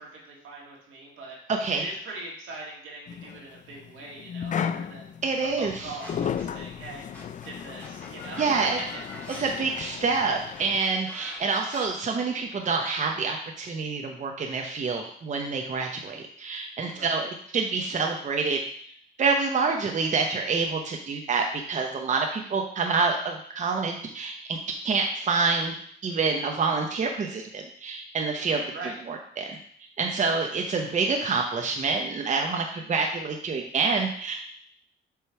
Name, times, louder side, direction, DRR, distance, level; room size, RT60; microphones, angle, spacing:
voice 1, 0.0-1.4 1.7-5.1 5.4-7.0 7.4-8.8 9.3-9.5 16.9-17.3 28.7-29.0, right 3 dB, 80° right, -2 dB, 1.9 m, -41 dB
voice 2, 1.5-1.9 5.2-6.0 8.4-8.8 9.4-18.6 19.2-25.7 26.0-28.6 29.1-29.4 30.0-34.3, right 4 dB, 40° right, 2 dB, 0.7 m, -27 dB
sound 1, 3.1-10.8, left 8 dB, 40° left, 0.4 m, -35 dB
sound 2, 6.0-6.7 7.1-11.9, left 1 dB, 5° left, 1.7 m, -43 dB
6.9 x 3.1 x 4.5 m, 0.62 s
cardioid pair, 90°, 20 cm